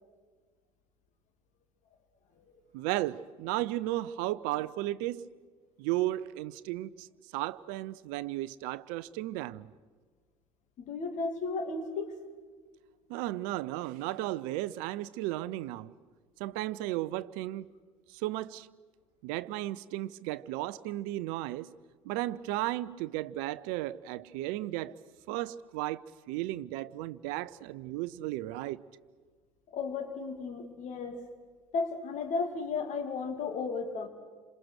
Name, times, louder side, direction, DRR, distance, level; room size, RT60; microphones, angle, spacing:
voice 1, 2.7-5.3 5.8-7.1 7.3-9.7 13.1-15.9 16.4-17.6 18.2-18.7 19.2-21.7 22.0-24.9 25.3-28.8, right 16 dB, 55° right, 0.8 m, -34 dB
voice 2, 10.8-12.2 29.7-31.2 31.7-34.1, left 4 dB, 45° left, 2.9 m, -34 dB
28.5 x 27.0 x 6.4 m
figure-of-eight pair, 65°, 17 cm